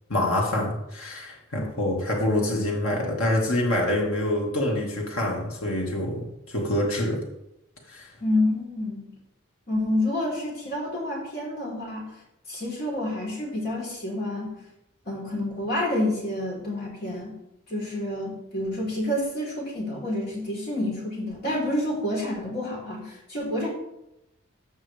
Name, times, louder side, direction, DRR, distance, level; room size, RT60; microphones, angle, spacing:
voice 1, 0.1-7.2 7.9-8.1, left 1 dB, 75° left, -1 dB, 2.3 m, -26 dB
voice 2, 8.2-9.1 9.7-12.1 12.5-14.6 15.1-17.3 17.7-23.7, left 1 dB, 45° left, -4 dB, 4.1 m, -28 dB
15.0 x 5.6 x 3.5 m, 0.85 s
head